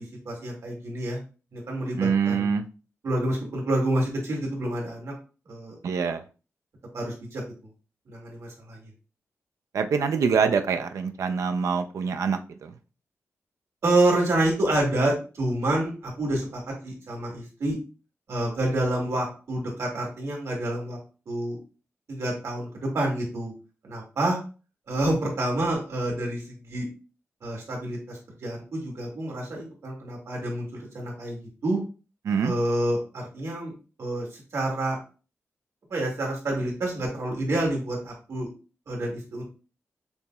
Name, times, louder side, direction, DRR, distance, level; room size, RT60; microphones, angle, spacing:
voice 1, 0.3-1.2 1.5-2.5 3.0-5.1 5.5-5.8 6.9-7.4 8.1-8.9 13.8-17.8 18.3-21.0 21.3-21.6 22.1-23.5 23.8-24.4 24.9-26.9 27.4-31.8 32.4-33.7 34.0-35.0 35.9-38.5 38.9-39.4, right 1 dB, 65° right, -1 dB, 2.0 m, -28 dB
voice 2, 2.0-2.6 5.8-6.2 9.7-12.7 32.3-32.5, right 6 dB, 85° right, 7 dB, 0.4 m, -25 dB
6.8 x 2.9 x 2.3 m, 0.34 s
wide cardioid pair, 150°, 5 cm